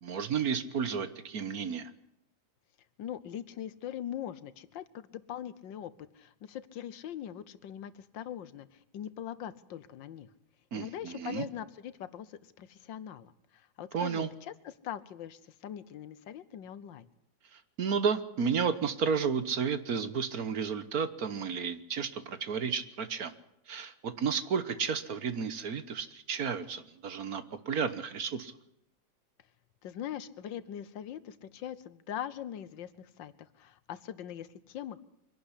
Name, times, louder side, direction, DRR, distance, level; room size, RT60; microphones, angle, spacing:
voice 1, 0.0-1.9 10.7-11.4 13.9-14.3 17.5-23.3 23.7-28.5, right 6 dB, 55° right, 12 dB, 1.5 m, -32 dB
voice 2, 3.0-10.3 10.7-17.1 29.8-35.0, left 10 dB, 80° left, 15 dB, 1.6 m, -42 dB
24.0 x 11.5 x 9.9 m, 0.81 s
omnidirectional pair, 2.0 m